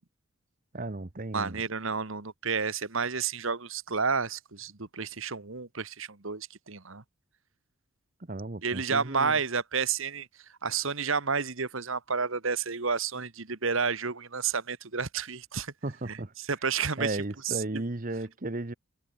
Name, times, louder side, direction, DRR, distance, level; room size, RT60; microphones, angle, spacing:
voice 1, 0.7-1.6 8.3-9.4 15.8-16.3 17.0-18.7, right 2 dB, 40° right, 1.0 m, -34 dB
voice 2, 1.3-7.0 8.6-10.3 10.6-15.7 16.1-17.8, right 5 dB, 65° right, 1.5 m, -31 dB
head